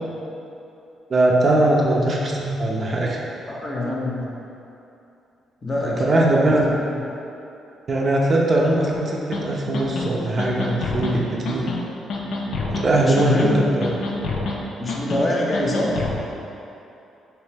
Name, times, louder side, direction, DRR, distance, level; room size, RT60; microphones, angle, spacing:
voice 1, 1.1-3.2 5.8-6.7 7.9-11.7 12.7-13.9, right 1 dB, 40° right, -2 dB, 0.5 m, -20 dB
voice 2, 3.4-4.2 5.6-6.5 6.9-7.0 12.9-13.6 14.8-15.9, left 1 dB, 30° left, -3 dB, 0.6 m, -25 dB
sound 1, 9.3-9.4 9.7-10.1 10.4-11.1 11.5-11.8 12.1-12.9 13.2-13.6 13.8-14.6 14.9-15.2 15.5-16.2, left 3 dB, 70° left, 0.4 m, -27 dB
3.2 x 2.9 x 3.3 m, 2.8 s
cardioid pair, 90°, 0 cm